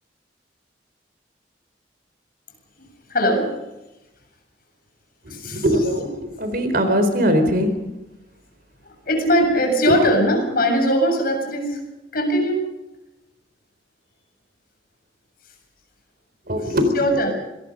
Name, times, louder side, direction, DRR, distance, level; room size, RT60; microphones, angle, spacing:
voice 1, 3.1-3.5 5.3-5.7 8.8-11.8 12.1-12.6 16.7-17.3, equal, 55° left, 3 dB, 7.5 m, -20 dB
voice 2, 5.2-7.7 9.9-10.0 16.5-17.3, equal, 55° right, 8 dB, 4.2 m, -21 dB
25.5 x 20.5 x 5.3 m, 0.99 s
head